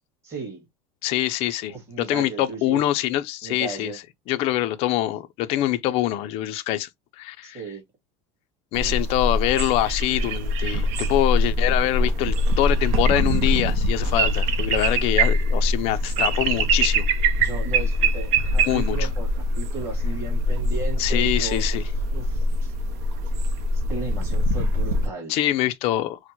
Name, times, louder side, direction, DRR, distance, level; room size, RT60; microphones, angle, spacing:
voice 1, 0.2-0.7 1.7-2.8 3.4-4.0 7.4-7.8 8.8-9.0 17.4-19.3 19.6-21.6 22.1-22.7 23.7-25.4, right 3 dB, 20° right, 1.9 m, -35 dB
voice 2, 1.0-3.9 4.3-6.9 7.2-7.6 8.7-17.1 18.6-19.1 21.0-21.8 25.3-26.2, left 14 dB, 45° left, 0.4 m, -24 dB
sound 1, 8.7-25.1, equal, 55° right, 0.7 m, -23 dB
4.3 x 2.1 x 2.8 m
cardioid pair, 160°, 14 cm